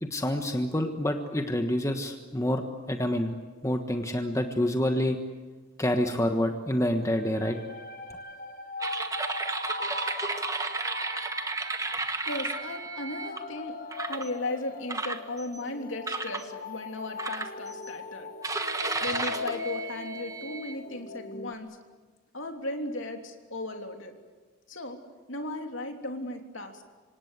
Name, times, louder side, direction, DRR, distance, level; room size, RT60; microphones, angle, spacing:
voice 1, 0.0-3.3 3.6-5.2 5.8-7.6, left 1 dB, 15° left, 5 dB, 1.4 m, -27 dB
sound 1, 6.3-21.5, left 3 dB, 40° left, 1.9 m, -40 dB
sound 2, 8.8-13.4 13.9-14.3 14.9-15.6 16.1-16.5 17.2-17.9 18.4-20.8, right 3 dB, 15° right, 1.2 m, -33 dB
voice 2, 12.3-13.7 14.1-18.3 19.0-21.7 22.3-24.1 24.7-25.0 25.3-26.8, left 2 dB, 60° left, 4 dB, 3.2 m, -36 dB
26.5 x 25.5 x 8.2 m, 1.4 s
head